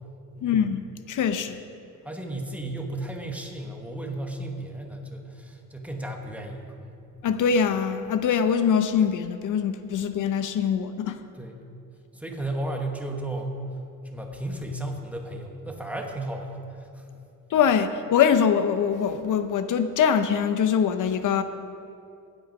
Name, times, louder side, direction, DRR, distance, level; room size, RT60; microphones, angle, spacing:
voice 1, 0.4-1.6 7.2-11.2 17.5-21.4, left 7 dB, 65° left, 10 dB, 0.7 m, -23 dB
voice 2, 2.0-7.0 11.3-11.6 12.1-13.6 14.0-17.1, right 1 dB, 5° right, 1 dB, 1.1 m, -34 dB
16.5 x 9.1 x 5.3 m, 2.6 s
cardioid pair, 160°, 34 cm